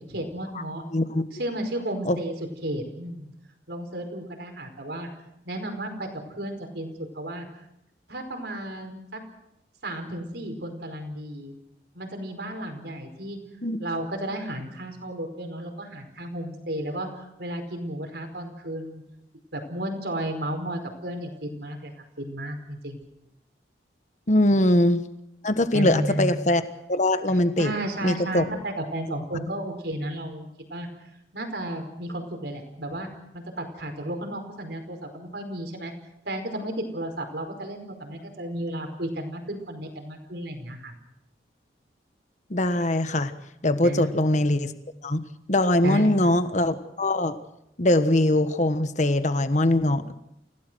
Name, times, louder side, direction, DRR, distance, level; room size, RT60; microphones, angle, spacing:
voice 1, 0.1-0.8 1.3-2.3 2.6-3.3 3.7-5.1 5.4-7.5 8.1-9.2 9.8-11.5 11.9-13.4 13.8-19.0 19.5-21.9 22.2-23.0 24.5-24.6 25.7-26.3 27.6-30.9 31.3-33.1 33.3-35.9 36.2-40.9 43.8-44.1 45.8-46.3, right 1 dB, 70° right, 5 dB, 4.9 m, -33 dB
voice 2, 0.9-1.2 2.0-2.2 13.6-13.8 24.3-25.0 25.4-26.6 26.9-27.7 28.0-28.4 42.5-43.3 43.6-44.7 45.0-45.2 45.5-47.4 47.8-50.1, left 1 dB, 45° left, 10 dB, 1.4 m, -22 dB
29.0 x 17.0 x 6.3 m, 0.82 s
head